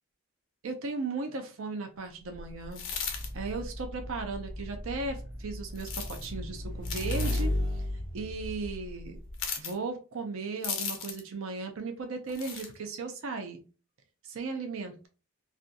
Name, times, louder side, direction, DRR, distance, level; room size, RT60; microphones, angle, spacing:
voice 1, 0.6-2.8 3.2-9.2 9.6-13.6 14.2-15.1, right 4 dB, 70° right, 5 dB, 0.5 m, -36 dB
Motorcycle / Engine, 2.3-9.4, left 1 dB, 45° right, 1.2 m, -35 dB
sound 1, 2.7-3.3 5.8-6.3 6.8-7.5 9.3-9.7 10.6-11.3 12.3-12.7, left 7 dB, 65° left, 0.6 m, -36 dB
Growling, 2.9-7.8, equal, 10° right, 0.3 m, -43 dB
2.5 x 2.3 x 2.5 m, 0.35 s
head